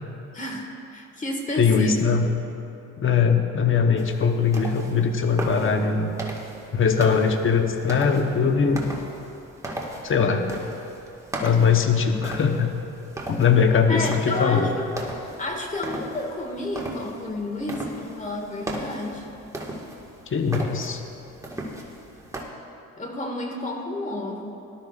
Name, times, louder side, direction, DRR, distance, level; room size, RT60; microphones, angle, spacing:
voice 1, 0.3-2.0 13.9-14.9 15.4-19.2 23.0-24.5, left 2 dB, 25° left, 1 dB, 1.9 m, -30 dB
voice 2, 1.6-2.3 3.0-6.1 6.7-8.8 10.0-10.5 11.4-12.7 13.3-14.7 20.3-21.0, left 6 dB, 45° left, 5 dB, 1.0 m, -21 dB
sound 1, 4.0-22.4, right 1 dB, 10° right, 1.7 m, -37 dB
18.5 x 12.5 x 2.4 m, 2.7 s
cardioid pair, 90°, 30 cm